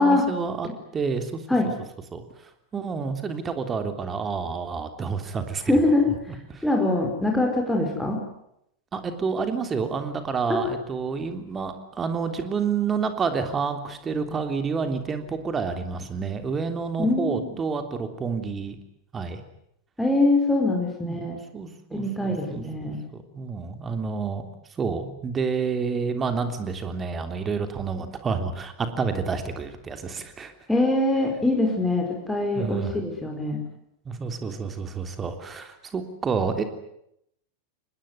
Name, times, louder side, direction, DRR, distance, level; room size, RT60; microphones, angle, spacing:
voice 1, 0.0-1.4 2.1-2.2 2.7-5.6 6.1-6.2 6.5-6.6 8.9-18.7 19.1-19.4 21.0-21.2 21.5-24.5 24.8-30.5 32.5-32.9 34.0-36.6, right 5 dB, 20° right, 7 dB, 3.3 m, -29 dB
voice 2, 5.7-6.0 6.6-8.2 10.5-10.7 17.0-17.5 20.0-21.4 21.9-23.0 30.7-33.6, left 2 dB, 5° left, 0 dB, 4.9 m, -23 dB
26.0 x 20.5 x 9.7 m, 0.77 s
figure-of-eight pair, 90°, 0 cm